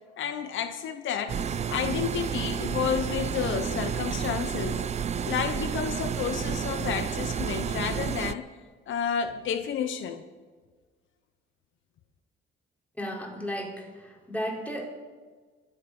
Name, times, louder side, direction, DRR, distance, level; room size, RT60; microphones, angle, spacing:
voice 1, 0.2-1.4 1.7-4.8 5.2-8.5 8.9-10.2, left 8 dB, 75° left, 8 dB, 1.0 m, -31 dB
sound 1, 1.3-8.3, right 7 dB, 35° right, 0.5 m, -30 dB
voice 2, 13.0-14.9, equal, 5° left, 0 dB, 3.9 m, -34 dB
24.0 x 8.1 x 5.5 m, 1.5 s
cardioid pair, 90°, 20 cm